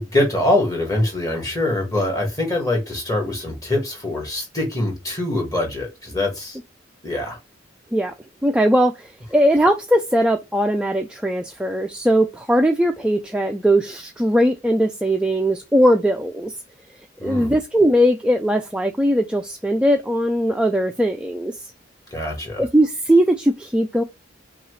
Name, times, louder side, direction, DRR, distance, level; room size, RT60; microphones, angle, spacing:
voice 1, 0.0-6.6 7.0-7.4 17.2-17.5 22.1-22.6, left 1 dB, 20° left, 1.6 m, -23 dB
voice 2, 8.4-16.6 17.2-21.7 22.6-24.0, equal, 5° right, 0.3 m, -19 dB
5.6 x 2.4 x 3.1 m
head